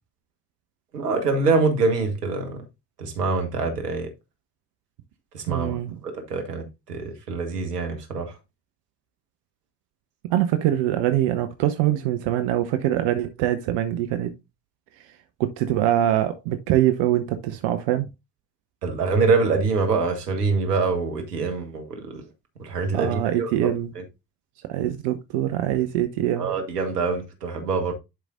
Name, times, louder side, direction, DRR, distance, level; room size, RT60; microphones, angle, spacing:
voice 1, 0.9-2.6 3.0-4.1 5.3-5.8 6.0-8.3 18.8-22.2 22.6-24.0 26.4-27.9, right 4 dB, 90° right, 1.5 m, -25 dB
voice 2, 5.5-6.0 10.3-14.3 15.4-18.1 22.9-23.9 24.7-26.5, right 12 dB, 65° right, 0.9 m, -23 dB
11.0 x 5.0 x 2.5 m
hypercardioid pair, 50°, 46 cm